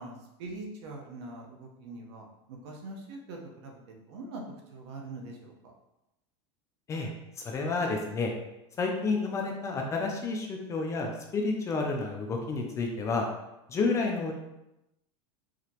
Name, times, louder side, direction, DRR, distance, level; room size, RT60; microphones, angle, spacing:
voice 1, 0.0-4.4 4.7-5.5, right 2 dB, 65° right, 0 dB, 1.0 m, -43 dB
voice 2, 7.4-8.3 8.8-13.2 13.7-14.3, left 3 dB, 20° left, 1 dB, 0.4 m, -30 dB
4.9 x 2.9 x 2.9 m, 0.91 s
supercardioid pair, 155°, 15 cm